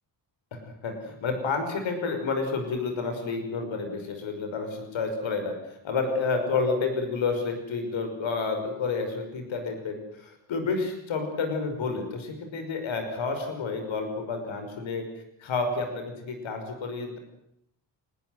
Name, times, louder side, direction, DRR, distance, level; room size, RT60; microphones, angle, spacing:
voice 1, 0.5-15.1 15.4-17.2, left 4 dB, 75° left, 6 dB, 5.8 m, -30 dB
25.0 x 20.5 x 8.0 m, 0.75 s
wide cardioid pair, 145°, 46 cm